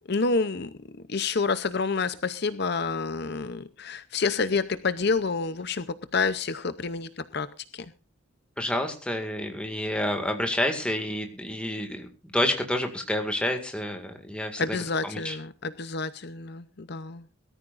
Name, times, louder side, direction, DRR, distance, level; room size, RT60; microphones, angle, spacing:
voice 1, 0.1-7.5 7.7-7.9 14.6-17.2, left 4 dB, 50° left, 13 dB, 0.7 m, -28 dB
voice 2, 8.6-14.8 15.0-15.4, left 1 dB, 5° left, 5 dB, 2.0 m, -29 dB
22.5 x 13.5 x 2.5 m, 0.34 s
head